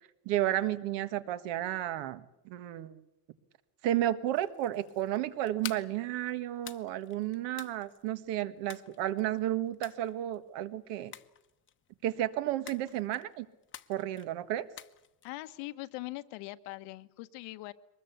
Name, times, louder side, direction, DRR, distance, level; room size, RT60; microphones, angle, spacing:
voice 1, 0.3-3.0 3.8-11.1 12.0-13.5 13.9-14.7, right 13 dB, 75° right, 1.7 m, -32 dB
sound 1, 4.2-15.7, left 9 dB, 25° left, 0.9 m, -51 dB
voice 2, 15.2-17.7, left 19 dB, 85° left, 1.4 m, -41 dB
23.5 x 20.5 x 8.4 m
cardioid pair, 155°, 44 cm